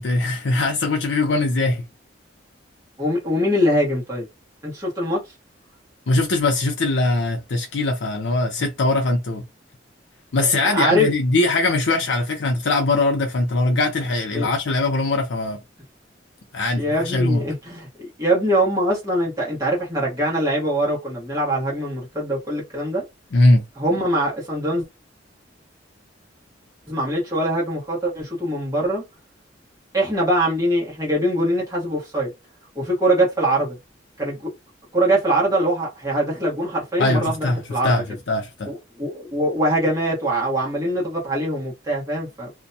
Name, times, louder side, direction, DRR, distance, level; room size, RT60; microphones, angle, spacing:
voice 1, 0.0-1.8 6.1-9.4 10.3-15.6 16.5-17.4 23.3-23.6 37.0-38.7, left 2 dB, 70° left, 0.6 m, -21 dB
voice 2, 3.0-4.3 4.6-5.2 10.4-11.1 14.3-14.5 16.8-17.9 18.2-23.0 23.8-24.8 26.9-29.0 29.9-32.3 32.7-33.8 34.2-34.5 34.9-37.9 38.7-42.5, right 1 dB, 20° right, 1.1 m, -22 dB
2.6 x 2.2 x 2.7 m
head